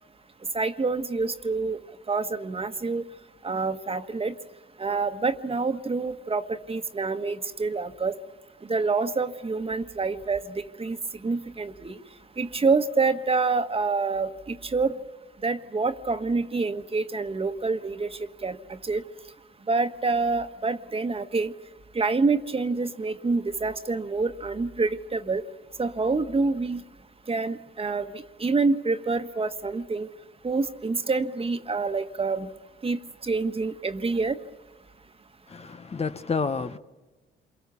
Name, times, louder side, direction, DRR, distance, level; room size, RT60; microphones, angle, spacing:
voice 1, 0.5-1.8 2.1-3.0 3.4-4.3 4.8-8.1 8.7-11.0 11.2-12.0 12.4-14.9 15.4-18.6 18.8-19.0 19.7-21.5 21.9-25.4 25.8-26.8 27.3-30.1 30.4-32.5 32.8-34.4, right 4 dB, 30° right, 1.5 m, -27 dB
voice 2, 35.5-36.8, left 5 dB, 30° left, 1.0 m, -29 dB
28.0 x 23.5 x 7.1 m
cardioid pair, 90°, 20 cm